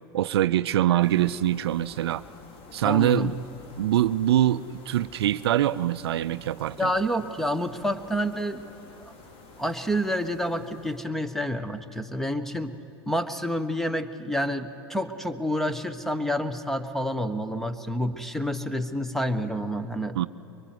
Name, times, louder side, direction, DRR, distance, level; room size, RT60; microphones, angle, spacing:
voice 1, 0.1-2.2 2.7-3.4 3.8-6.9 20.1-20.3, right 12 dB, 75° right, 15 dB, 0.5 m, -24 dB
sound 1, 1.0-11.1, left 3 dB, 45° left, 2.7 m, -50 dB
voice 2, 2.8-3.4 6.8-8.6 9.6-12.8 13.0-20.2, equal, ahead, 11 dB, 1.3 m, -28 dB
23.0 x 22.5 x 9.4 m, 2.8 s
hypercardioid pair, 90°, 13 cm